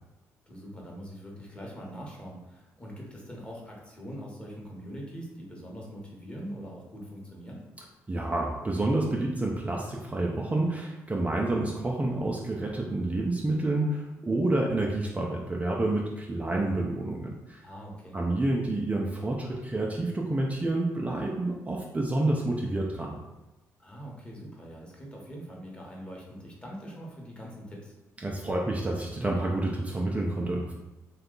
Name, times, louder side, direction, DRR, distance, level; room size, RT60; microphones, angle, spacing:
voice 1, 0.5-7.6 17.6-18.2 23.8-27.9, equal, 15° left, -2 dB, 1.1 m, -43 dB
voice 2, 8.1-17.6 18.1-23.1 28.2-30.7, right 2 dB, 20° right, -1 dB, 0.4 m, -29 dB
2.7 x 2.3 x 3.8 m, 1.0 s
supercardioid pair, 65°, 6 cm